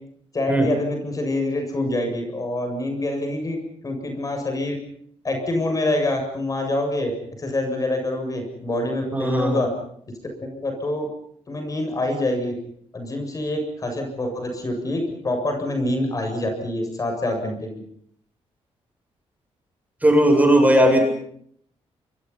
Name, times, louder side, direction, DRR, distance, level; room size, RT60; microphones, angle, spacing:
voice 1, 0.3-4.8 5.2-7.1 7.4-9.7 10.5-11.1 11.5-12.5 12.9-17.8, left 1 dB, 30° left, 4 dB, 7.5 m, -26 dB
voice 2, 9.1-9.6 20.0-21.1, equal, 15° right, 4 dB, 7.6 m, -17 dB
29.0 x 25.0 x 5.8 m, 0.65 s
cardioid pair, 120°, 11 cm